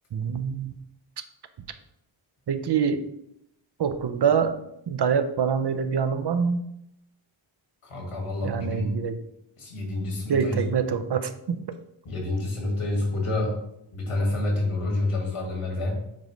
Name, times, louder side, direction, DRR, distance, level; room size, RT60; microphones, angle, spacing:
voice 1, 0.1-0.7 2.5-3.0 3.8-4.6 4.9-6.6 8.4-9.2 10.3-11.6, right 6 dB, 55° right, 10 dB, 0.7 m, -25 dB
voice 2, 7.8-8.9 9.6-10.6 12.0-13.6 13.9-16.0, left 2 dB, 90° left, -1 dB, 2.2 m, -28 dB
7.5 x 5.1 x 3.2 m, 0.77 s
wide cardioid pair, 105°, 50 cm